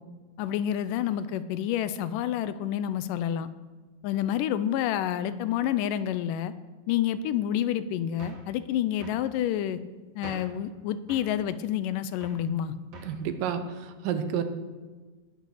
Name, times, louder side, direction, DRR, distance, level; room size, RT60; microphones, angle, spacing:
voice 1, 0.4-3.5 4.0-6.5 6.9-9.8 10.2-12.7, left 10 dB, 90° left, 14 dB, 2.2 m, -28 dB
sound 1, 8.2-8.5 9.0-9.3 10.2-10.6 11.1-11.4 12.2-12.5 12.9-13.2, right 3 dB, 50° right, 2.7 m, -44 dB
voice 2, 13.1-13.6 14.0-14.4, right 8 dB, 90° right, 9 dB, 2.6 m, -29 dB
18.5 x 6.7 x 6.4 m, 1.3 s
omnidirectional pair, 3.8 m